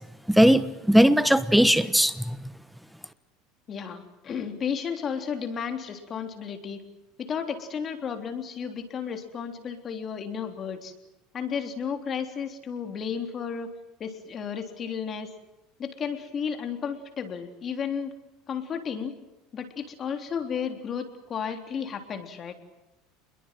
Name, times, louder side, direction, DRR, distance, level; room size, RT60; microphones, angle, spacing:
voice 1, 0.3-2.4, equal, ahead, 13 dB, 1.2 m, -19 dB
voice 2, 3.7-6.8 7.2-10.9 11.3-13.7 14.0-15.3 15.8-18.1 18.5-19.1 19.5-22.6, left 7 dB, 30° left, 6 dB, 3.5 m, -33 dB
28.0 x 22.0 x 7.6 m, 0.92 s
supercardioid pair, 140°, 0 cm